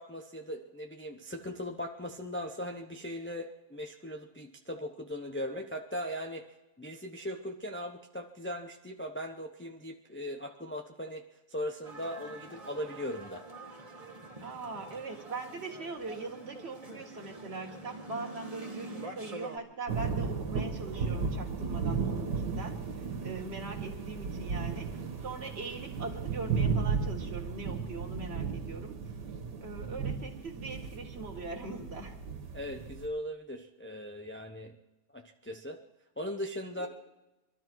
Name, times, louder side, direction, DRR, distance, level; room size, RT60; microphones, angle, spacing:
voice 1, 0.0-6.4 6.8-11.2 11.5-13.4 32.5-34.8 35.1-35.8 36.2-36.9, equal, 15° left, 3 dB, 0.4 m, -39 dB
sound 1, 11.8-19.6, right 2 dB, 20° right, 1.7 m, -45 dB
voice 2, 14.4-29.0 29.6-32.2 36.8-36.9, right 3 dB, 40° right, 2 dB, 2.2 m, -41 dB
sound 2, 19.9-33.1, right 5 dB, 90° right, 1.9 m, -35 dB
23.5 x 12.5 x 4.6 m, 1.0 s
omnidirectional pair, 1.8 m